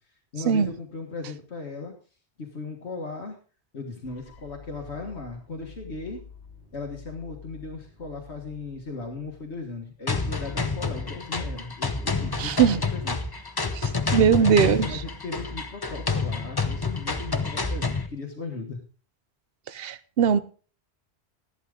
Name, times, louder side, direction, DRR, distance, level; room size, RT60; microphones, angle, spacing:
voice 1, 0.3-1.9 2.4-3.4 3.7-6.2 6.7-12.5 12.9-13.2 13.9-18.8, left 3 dB, 75° left, 1.9 m, -37 dB
sound 1, 4.0-10.0, left 6 dB, 55° left, 2.9 m, -48 dB
sound 2, 10.1-18.1, left 4 dB, 25° left, 0.7 m, -28 dB
voice 2, 12.4-12.8 13.7-14.9 19.7-20.4, right 7 dB, 65° right, 0.9 m, -21 dB
13.5 x 11.5 x 3.7 m
omnidirectional pair, 1.1 m